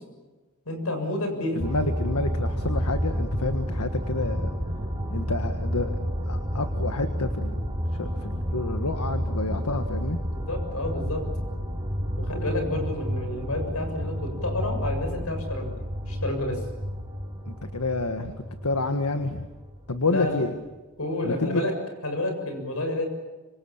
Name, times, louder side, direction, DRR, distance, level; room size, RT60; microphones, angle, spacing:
voice 1, 0.7-1.7 10.3-11.2 12.2-15.7 16.1-16.6 20.1-20.5 21.0-21.7 22.0-23.1, left 1 dB, 75° left, 5 dB, 7.0 m, -30 dB
voice 2, 1.5-4.5 5.1-5.9 6.3-10.2 17.5-18.3 18.6-19.5 19.9-20.5 21.2-21.6, left 2 dB, 90° left, 7 dB, 1.6 m, -29 dB
sound 1, 1.6-20.4, equal, 20° right, 4.0 m, -30 dB
26.0 x 25.5 x 7.3 m, 1.2 s
head